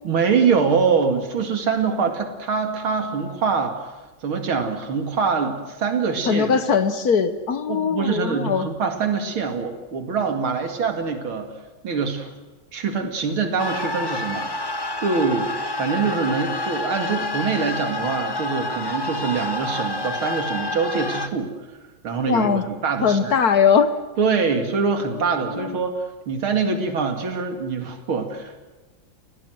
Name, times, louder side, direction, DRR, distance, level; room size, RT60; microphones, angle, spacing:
voice 1, 0.0-3.9 4.2-6.6 7.7-11.5 11.8-12.3 12.7-15.5 15.8-21.5 22.0-23.4 24.2-28.6, right 5 dB, 85° right, 5 dB, 3.2 m, -24 dB
voice 2, 6.3-8.7 22.3-22.6 23.0-23.9 25.5-25.7, left 6 dB, 55° left, 11 dB, 1.4 m, -20 dB
sound 1, 13.6-21.3, left 2 dB, 30° left, 0.4 m, -28 dB
29.5 x 17.0 x 7.9 m, 1.2 s
omnidirectional pair, 2.2 m